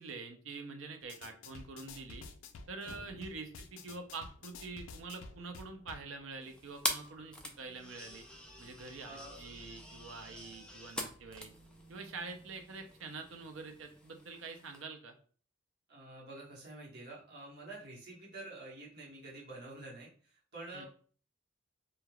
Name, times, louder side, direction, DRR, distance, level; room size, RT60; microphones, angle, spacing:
voice 1, 0.0-2.3 2.7-8.3 8.6-11.5 11.9-15.1 20.7-20.9, right 4 dB, 80° right, 6 dB, 0.5 m, -46 dB
sound 1, 1.0-6.1, left 4 dB, 85° left, 0.3 m, -51 dB
sound 2, 2.8-14.8, right 1 dB, 45° left, 1.0 m, -60 dB
sound 3, 6.4-14.8, left 1 dB, 5° left, 0.3 m, -44 dB
voice 2, 9.0-9.4 15.9-20.9, right 2 dB, 55° right, -4 dB, 1.1 m, -48 dB
3.2 x 2.3 x 2.2 m, 0.42 s
head